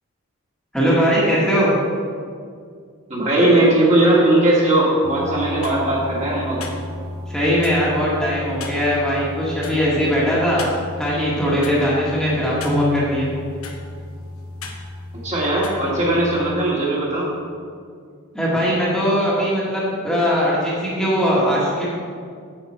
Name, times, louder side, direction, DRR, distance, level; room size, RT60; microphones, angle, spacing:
voice 1, 0.7-1.7 7.3-10.6 11.0-13.3 18.3-22.0, equal, 5° left, -7 dB, 1.7 m, -20 dB
voice 2, 3.1-6.6 15.2-17.3, right 1 dB, 35° right, -5 dB, 2.1 m, -18 dB
sound 1, 5.0-16.5, left 2 dB, 90° left, 1.0 m, -34 dB
8.7 x 7.3 x 4.4 m, 2.1 s
head